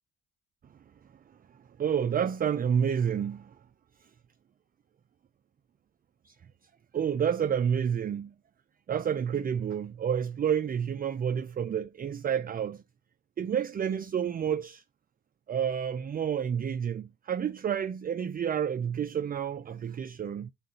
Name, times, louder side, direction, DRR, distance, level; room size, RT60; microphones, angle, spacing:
voice 1, 1.5-3.6 4.0-4.1 6.2-6.4 6.9-8.3 8.9-12.8 13.4-14.8 15.5-20.5, right 8 dB, 30° right, 0.4 m, -29 dB
8.0 x 3.8 x 4.0 m
cardioid pair, 90°, 30 cm